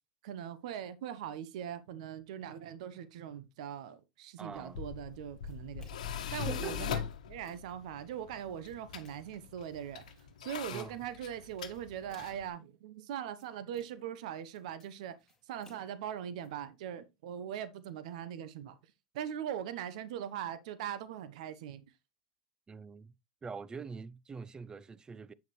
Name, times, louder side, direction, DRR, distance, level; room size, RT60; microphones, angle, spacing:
voice 1, 0.2-7.0 7.3-10.1 10.4-15.1 15.5-18.8 19.1-21.8, right 9 dB, 70° right, 1.0 m, -41 dB
voice 2, 4.4-4.8 6.5-6.9 10.7-11.0 22.7-23.1 23.4-25.3, right 4 dB, 20° right, 0.6 m, -44 dB
Tools, 4.5-12.5, left 8 dB, 80° left, 1.1 m, -41 dB
sound 1, 5.5-6.2 6.8-7.8 8.4-9.4 9.9-10.8 11.5-12.6 13.1-14.2 14.4-16.5, left 1 dB, 10° left, 3.5 m, -64 dB
8.3 x 6.6 x 3.1 m
hypercardioid pair, 100°, 4 cm